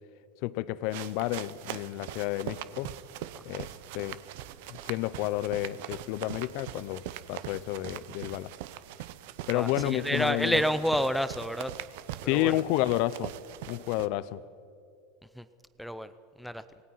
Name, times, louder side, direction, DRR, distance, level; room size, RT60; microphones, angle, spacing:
voice 1, 0.4-2.9 3.5-4.2 4.8-7.0 7.3-8.5 9.5-10.6 12.2-13.3 13.7-14.4, left 16 dB, 60° left, 0.7 m, -30 dB
sound 1, 0.9-14.1, right 13 dB, 70° right, 0.8 m, -42 dB
voice 2, 9.5-11.7 12.2-12.6 15.4-15.5 15.8-16.1 16.4-16.6, equal, ahead, 0.7 m, -29 dB
25.5 x 19.0 x 5.8 m
supercardioid pair, 135°, 0 cm